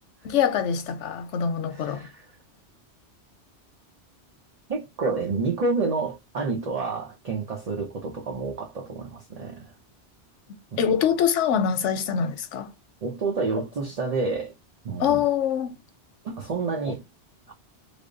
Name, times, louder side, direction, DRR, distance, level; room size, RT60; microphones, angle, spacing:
voice 1, 0.2-2.1 10.8-12.7 15.0-15.7, left 8 dB, 90° left, 1.0 m, -24 dB
voice 2, 1.7-2.2 4.7-9.7 10.7-10.8 13.0-14.5 14.8-15.2 16.2-17.0 17.5-17.6, right 4 dB, 45° right, 0.6 m, -29 dB
3.4 x 2.0 x 3.7 m
omnidirectional pair, 1.2 m